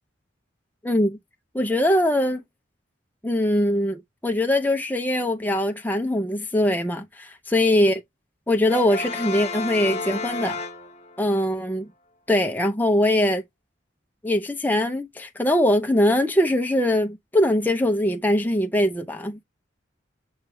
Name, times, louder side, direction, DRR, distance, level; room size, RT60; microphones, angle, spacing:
voice 1, 0.8-1.2 1.5-2.4 3.2-8.0 8.5-10.6 11.2-11.9 12.3-13.4 14.2-19.4, left 1 dB, 10° left, 0.5 m, -22 dB
Brass instrument, 8.7-11.3, left 3 dB, 30° left, 0.9 m, -31 dB
6.0 x 2.3 x 3.0 m
head